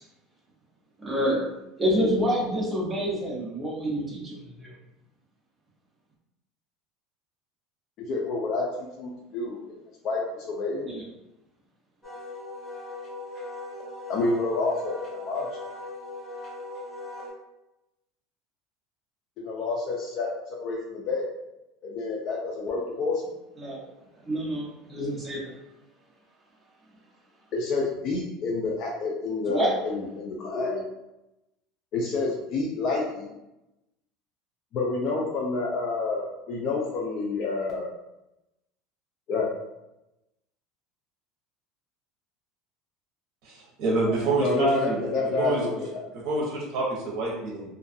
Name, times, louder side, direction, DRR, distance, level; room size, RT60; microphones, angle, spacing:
voice 1, 1.0-1.4 1.8-4.7 10.8-11.0 23.6-23.8 24.2-25.5 29.5-29.7, equal, 15° right, -4 dB, 0.8 m, -27 dB
voice 2, 8.1-8.6 9.0-9.6 10.0-10.9 14.1-15.0 15.2-15.5 19.4-20.3 20.6-21.3 21.8-23.2 27.5-30.8 31.9-33.3 34.7-37.9 39.3-39.5 44.1-46.0, left 3 dB, 50° left, -2 dB, 0.4 m, -28 dB
Wind instrument woodwind instrument, 12.0-17.3, left 2 dB, 25° left, 0.9 m, -39 dB
voice 3, 43.4-45.0 45.4-45.6 46.2-47.7, right 2 dB, 55° right, -3 dB, 0.8 m, -27 dB
2.5 x 2.3 x 2.6 m, 0.92 s
supercardioid pair, 135°, 0 cm